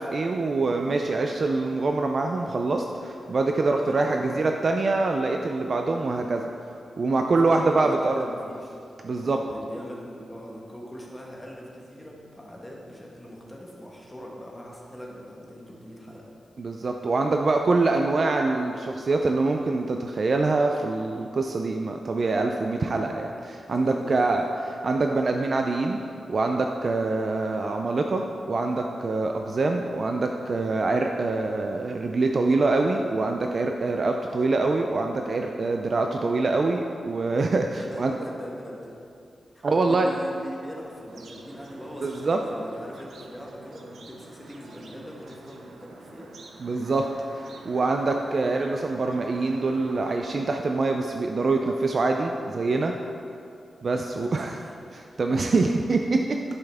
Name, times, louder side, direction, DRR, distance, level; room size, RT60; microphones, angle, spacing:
voice 1, 0.0-6.5 7.0-8.3 9.0-9.4 16.6-26.0 26.3-38.1 39.6-40.1 42.0-42.4 46.6-47.1 47.3-52.9 53.8-54.5 54.9-56.4, right 3 dB, 45° right, 3 dB, 0.4 m, -25 dB
voice 2, 3.7-4.7 7.1-8.7 9.2-16.2 23.6-24.5 37.8-38.9 39.5-46.3 54.2-54.7, equal, 10° left, -3 dB, 1.2 m, -41 dB
sound 1, 41.1-50.2, right 3 dB, 80° right, 0.7 m, -47 dB
10.5 x 5.6 x 3.5 m, 2.5 s
wide cardioid pair, 130°, 0 cm